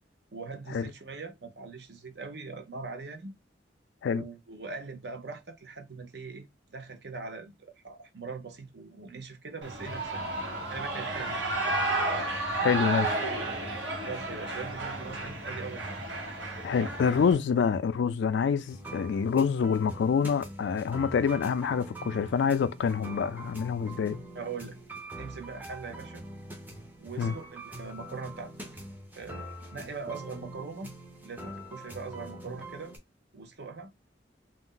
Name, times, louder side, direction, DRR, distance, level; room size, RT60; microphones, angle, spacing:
voice 1, 0.3-3.3 4.1-11.4 14.0-16.0 16.8-17.4 24.3-24.8 25.2-26.2 27.0-28.8 29.1-30.9 31.2-32.9 33.3-33.9, right 4 dB, 65° right, 0.6 m, -41 dB
Shout / Cheering, 9.6-17.3, right 2 dB, 85° right, 1.0 m, -32 dB
voice 2, 12.6-13.2 16.6-24.2 27.2-27.3, left 6 dB, 70° left, 0.3 m, -26 dB
sound 1, 18.6-33.0, right 1 dB, 10° right, 0.6 m, -44 dB
2.5 x 2.1 x 3.7 m
head